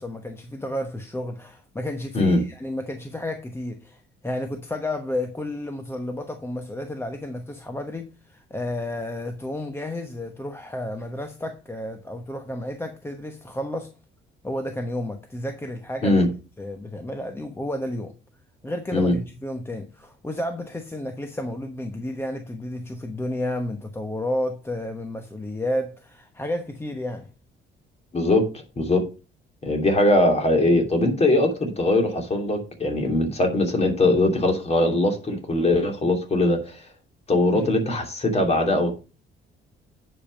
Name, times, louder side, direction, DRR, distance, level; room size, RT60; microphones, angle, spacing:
voice 1, 0.0-13.9 14.4-16.2 16.6-18.1 18.6-27.3 37.5-37.8, left 1 dB, 10° left, 1.1 m, -31 dB
voice 2, 28.1-28.4 28.8-29.0 29.6-36.8 37.3-38.9, left 2 dB, 30° left, 2.7 m, -21 dB
9.8 x 5.4 x 5.2 m
cardioid pair, 110°, 21 cm